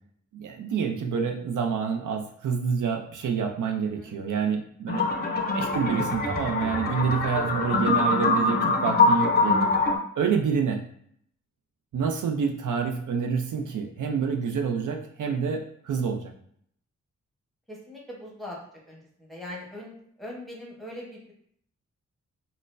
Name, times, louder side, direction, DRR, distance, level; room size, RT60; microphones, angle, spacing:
voice 1, 0.3-5.1 5.3-9.7 10.2-10.8 11.9-16.3, right 6 dB, 80° right, 2 dB, 0.5 m, -27 dB
voice 2, 3.9-4.2 17.7-18.6 18.9-19.0 19.3-21.3, left 1 dB, ahead, -3 dB, 0.9 m, -41 dB
sound 1, 4.9-10.0, left 3 dB, 35° left, 0.4 m, -24 dB
4.1 x 2.1 x 2.5 m, 0.65 s
wide cardioid pair, 125°, 30 cm